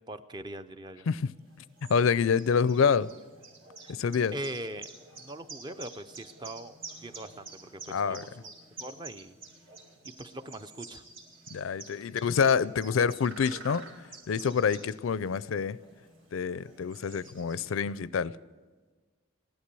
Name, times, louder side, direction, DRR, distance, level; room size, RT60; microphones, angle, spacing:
voice 1, 0.1-1.1 3.8-3.9 4.3-4.9 5.2-8.5 8.8-9.3 10.0-11.0, right 1 dB, 20° right, 0.5 m, -41 dB
sound 1, 1.4-18.0, right 3 dB, 70° right, 2.3 m, -49 dB
voice 2, 1.9-3.1 3.9-4.3 7.9-8.2 11.5-13.8 14.3-15.8 16.3-18.3, left 6 dB, 75° left, 0.4 m, -27 dB
16.0 x 11.5 x 6.8 m
head